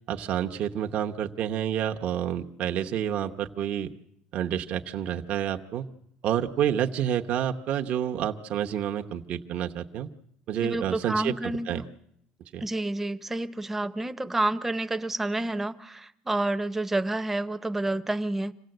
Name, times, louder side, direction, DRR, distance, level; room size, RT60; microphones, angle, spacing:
voice 1, 0.1-3.9 4.3-5.9 6.2-10.1 10.5-11.8 12.5-12.6, right 10 dB, 50° right, 1.0 m, -29 dB
voice 2, 10.6-11.9 12.6-18.5, right 2 dB, 10° right, 0.8 m, -29 dB
26.5 x 16.5 x 7.9 m
cardioid pair, 135°, 3 cm